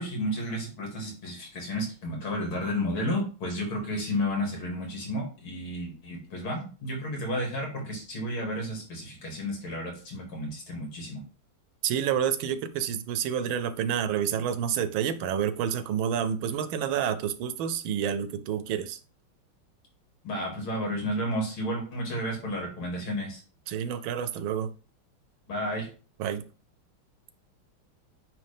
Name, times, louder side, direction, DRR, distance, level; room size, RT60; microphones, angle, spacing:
voice 1, 0.0-11.2 20.2-23.4 25.5-25.9, equal, 85° left, 3.4 m, -32 dB
voice 2, 11.8-19.0 23.7-24.7 26.2-26.4, right 8 dB, 80° right, 1.4 m, -29 dB
9.2 x 3.2 x 3.4 m
omnidirectional pair, 2.3 m